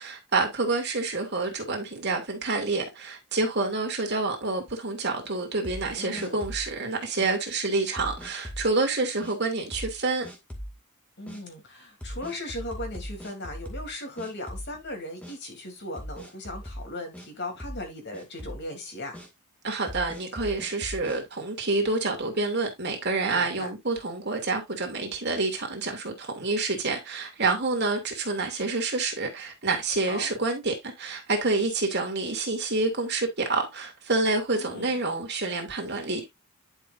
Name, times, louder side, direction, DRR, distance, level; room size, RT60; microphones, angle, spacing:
voice 1, 0.0-10.3 19.6-36.3, right 3 dB, 50° right, 2.7 m, -28 dB
sound 1, 5.6-6.7 7.2-7.3 8.0-8.7 9.2-9.3 9.7-10.0 10.2-10.8 11.3-11.4 12.0-13.9 14.2-14.9 15.2-15.4 16.0-17.3 17.6-17.9 18.1-18.6 19.1-19.3 19.9-21.2, equal, 5° left, 2.1 m, -39 dB
voice 2, 5.9-6.5 11.2-19.2 23.3-23.7 30.1-30.3 34.5-34.9, left 1 dB, 50° left, 3.2 m, -38 dB
11.0 x 5.6 x 2.6 m
head